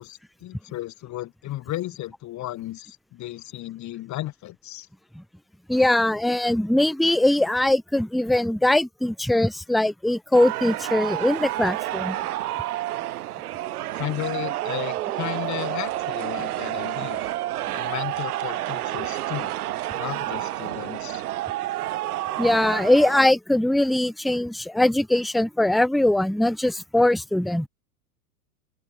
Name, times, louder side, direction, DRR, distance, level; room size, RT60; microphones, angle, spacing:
voice 1, 0.0-4.9 13.9-17.2 17.7-19.5 19.9-21.2, left 15 dB, 35° left, 2.8 m, -34 dB
voice 2, 5.7-12.2 22.4-27.7, left 1 dB, ahead, 0.7 m, -21 dB
sound 1, 10.3-23.3, right 14 dB, 70° right, 5.5 m, -29 dB
open air
hypercardioid pair, 100°, 47 cm